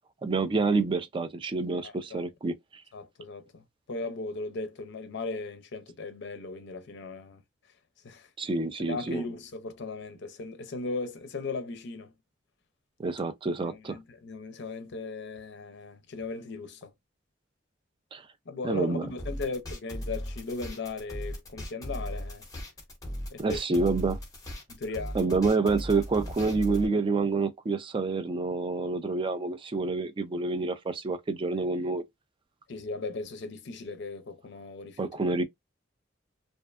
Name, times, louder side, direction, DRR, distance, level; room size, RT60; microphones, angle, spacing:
voice 1, 0.2-2.8 8.4-9.2 13.0-14.0 18.1-18.3 18.6-19.1 23.4-24.2 25.1-32.0 35.0-35.4, right 3 dB, 25° right, 0.3 m, -28 dB
voice 2, 1.8-2.2 2.9-3.6 3.9-7.4 8.0-8.3 8.9-12.1 13.9-16.9 18.5-22.4 23.3-23.6 24.7-25.4 32.7-35.1, left 3 dB, 60° left, 0.5 m, -37 dB
sound 1, 19.2-26.9, equal, 20° left, 0.8 m, -37 dB
2.6 x 2.2 x 2.3 m
head